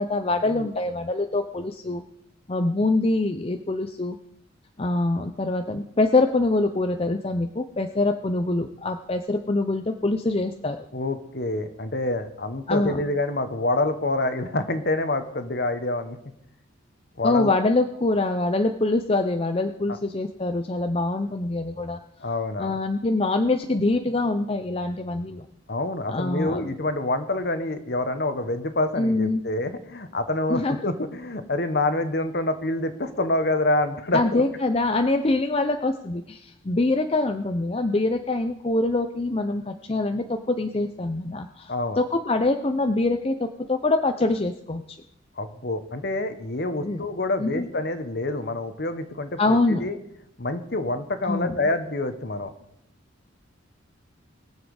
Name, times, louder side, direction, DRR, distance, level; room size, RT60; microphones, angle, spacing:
voice 1, 0.0-2.0 2.5-4.2 4.8-10.8 12.7-13.0 17.2-22.0 22.6-25.5 26.1-26.7 29.0-29.4 30.5-30.8 34.1-45.0 46.8-47.1 47.4-47.7 49.4-49.9 51.2-51.5, left 2 dB, 30° left, 7 dB, 0.6 m, -24 dB
voice 2, 10.9-16.2 17.2-17.5 19.9-20.0 22.2-22.8 25.7-34.4 41.7-42.0 45.4-50.0 50.4-52.5, left 2 dB, 55° left, 9 dB, 1.2 m, -27 dB
21.5 x 7.5 x 4.9 m, 0.77 s
head